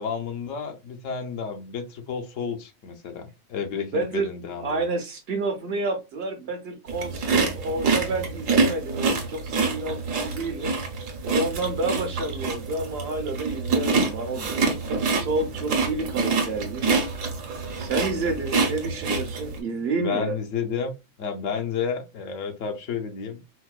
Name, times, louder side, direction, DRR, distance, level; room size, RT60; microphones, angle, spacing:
voice 1, 0.0-4.9 20.0-20.9 21.2-23.4, left 6 dB, 75° left, 1.0 m, -31 dB
voice 2, 3.9-4.3 4.6-10.7 11.2-16.9 17.8-20.4, right 3 dB, 60° right, 0.8 m, -29 dB
sound 1, 6.9-19.6, right 4 dB, 75° right, 1.2 m, -26 dB
4.2 x 2.1 x 2.3 m
omnidirectional pair, 1.3 m